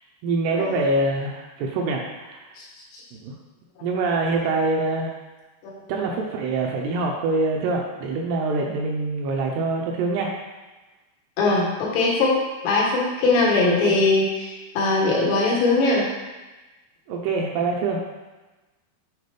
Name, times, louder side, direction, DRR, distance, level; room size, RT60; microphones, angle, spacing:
voice 1, 0.2-2.5 3.2-3.3 3.8-5.1 5.9-10.3 13.8-14.0 17.1-18.0, right 3 dB, 80° right, 0 dB, 2.4 m, -25 dB
voice 2, 11.4-12.4 12.6-14.5 14.8-16.1, left 3 dB, 85° left, -4 dB, 3.7 m, -20 dB
8.1 x 4.5 x 3.3 m, 1.2 s
omnidirectional pair, 5.0 m